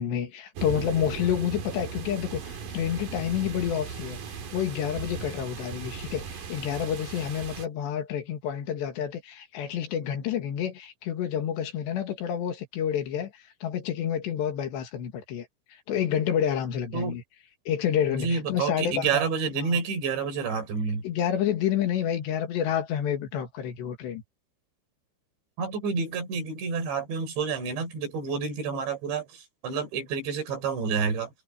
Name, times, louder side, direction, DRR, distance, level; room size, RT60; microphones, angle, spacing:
voice 1, 0.0-17.2 17.7-19.2 19.6-19.8 21.0-24.2, left 9 dB, 70° left, 4.1 m, -29 dB
sound 1, 0.6-7.7, right 6 dB, 55° right, 3.6 m, -37 dB
voice 2, 18.1-21.0 25.6-31.3, right 5 dB, 75° right, 7.4 m, -29 dB
omnidirectional pair, 5.2 m